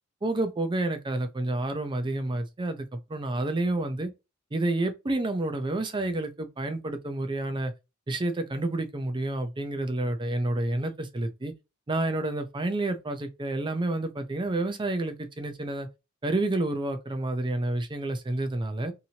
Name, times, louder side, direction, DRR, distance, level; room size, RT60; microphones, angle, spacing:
voice 1, 0.2-4.1 4.5-7.7 8.1-11.5 11.9-15.9 16.2-18.9, right 2 dB, 20° right, 0.5 m, -29 dB
2.8 x 2.6 x 2.7 m
head